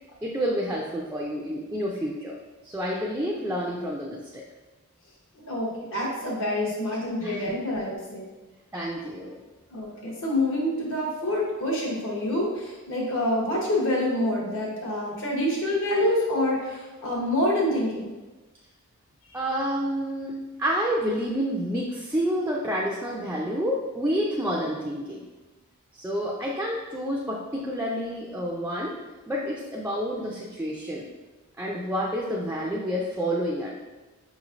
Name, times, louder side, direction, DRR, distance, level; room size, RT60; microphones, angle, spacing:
voice 1, 0.2-2.4 2.6-4.4 7.2-7.4 8.7-9.4 19.3-25.3 25.9-29.0 29.3-31.1 31.6-33.7, equal, 10° right, -3 dB, 0.3 m, -29 dB
voice 2, 5.3-8.3 9.7-18.1, left 1 dB, 60° left, -3 dB, 1.0 m, -27 dB
5.5 x 3.0 x 2.5 m, 1.2 s
head